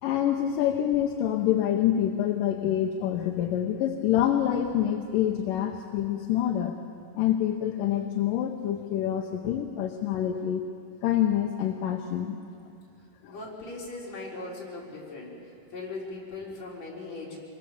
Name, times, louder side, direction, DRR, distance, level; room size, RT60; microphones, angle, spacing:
voice 1, 0.0-6.8 7.2-10.7 11.0-12.4 13.2-13.3, left 10 dB, 70° left, 4 dB, 2.2 m, -26 dB
voice 2, 12.9-17.4, left 3 dB, 45° left, -4 dB, 5.2 m, -39 dB
25.5 x 21.5 x 7.1 m, 2.5 s
omnidirectional pair, 4.4 m